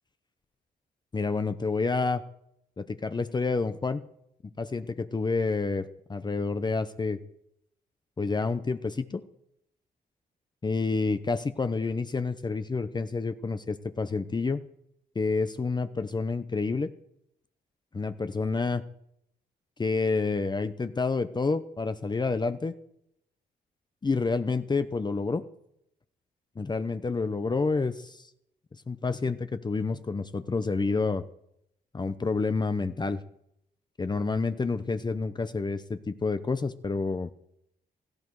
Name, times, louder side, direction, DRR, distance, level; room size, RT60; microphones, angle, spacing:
voice 1, 1.1-2.2 2.8-4.0 4.6-7.2 8.2-9.2 10.6-14.6 15.1-16.9 17.9-18.8 19.8-22.8 24.0-25.4 26.6-28.3 28.9-31.2 31.9-33.2 34.0-37.3, left 4 dB, 25° left, 11 dB, 0.8 m, -29 dB
17.5 x 14.0 x 4.8 m, 0.77 s
cardioid pair, 80°, 17 cm